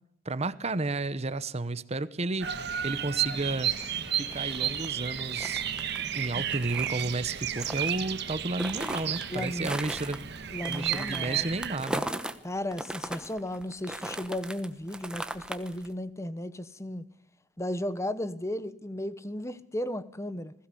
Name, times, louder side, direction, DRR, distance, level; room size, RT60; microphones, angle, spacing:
voice 1, 0.2-3.7 4.2-5.6 6.1-10.2 10.7-12.0, right 2 dB, 35° right, 0.9 m, -32 dB
Bird vocalization bird call bird song, 2.4-11.8, right 9 dB, 55° right, 1.5 m, -32 dB
sound 1, 3.5-12.4 12.7-15.9, right 1 dB, 5° right, 1.1 m, -38 dB
voice 2, 9.3-9.7 10.5-11.5 12.4-17.1 17.6-20.5, left 1 dB, 15° left, 0.9 m, -35 dB
21.0 x 16.0 x 8.4 m
head